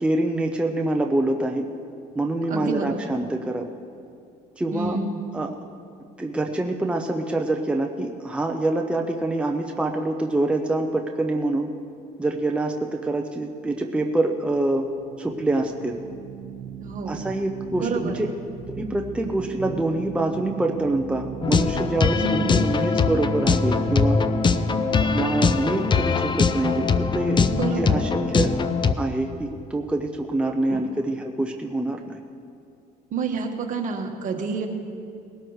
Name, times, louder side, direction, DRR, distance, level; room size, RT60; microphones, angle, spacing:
voice 1, 0.0-1.7 2.1-3.7 4.6-5.0 5.3-5.5 6.2-11.7 12.2-14.9 15.2-16.0 17.1-18.3 18.7-24.2 25.1-27.4 27.8-28.5 29.0-32.2, right 2 dB, 5° right, 2 dB, 0.7 m, -25 dB
voice 2, 2.5-3.1 4.7-5.3 16.8-17.2 17.8-18.3 22.2-22.6 27.5-28.2 30.7-30.8 33.1-34.7, right 4 dB, 50° right, 3 dB, 1.6 m, -29 dB
sound 1, 14.4-27.5, right 7 dB, 80° right, 1.5 m, -38 dB
sound 2, 21.4-28.9, left 4 dB, 25° left, 0.5 m, -22 dB
20.5 x 12.5 x 3.2 m, 2.5 s
cardioid pair, 110°, 17 cm